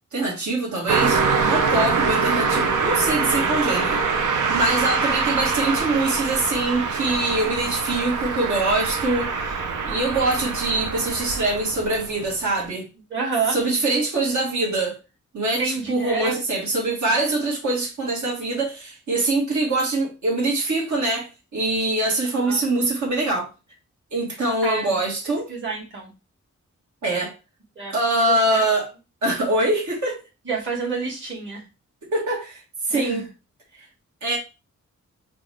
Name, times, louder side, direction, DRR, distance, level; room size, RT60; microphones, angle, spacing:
voice 1, 0.1-1.2 1.5-4.0 4.5-12.9 13.5-15.0 15.3-23.5 24.1-25.5 27.0-27.3 27.9-28.9 29.2-30.2 32.0-32.6 32.9-33.3 34.2-34.4, right 2 dB, 70° right, 1.8 m, -24 dB
Car passing by, 0.9-12.3, right 5 dB, 85° right, 0.8 m, -24 dB
voice 2, 13.1-13.6 15.6-16.3 22.4-22.6 24.6-24.9 25.5-26.1 27.7-28.6 30.4-31.6 32.9-33.3, right 4 dB, 40° right, 1.7 m, -28 dB
6.0 x 2.5 x 3.3 m
wide cardioid pair, 160°, 30 cm